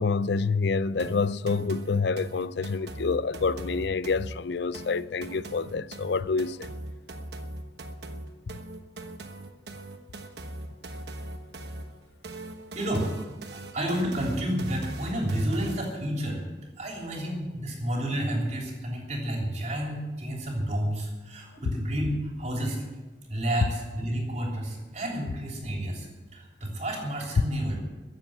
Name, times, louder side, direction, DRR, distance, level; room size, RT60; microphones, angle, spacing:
voice 1, 0.0-6.7 13.6-13.7, left 4 dB, 60° left, 0.5 m, -27 dB
sound 1, 1.0-16.0, right 1 dB, 60° right, 1.1 m, -40 dB
voice 2, 12.7-13.1 13.5-16.4 16.8-22.8 23.3-27.8, right 1 dB, 35° right, 3.2 m, -30 dB
14.5 x 7.6 x 9.9 m
head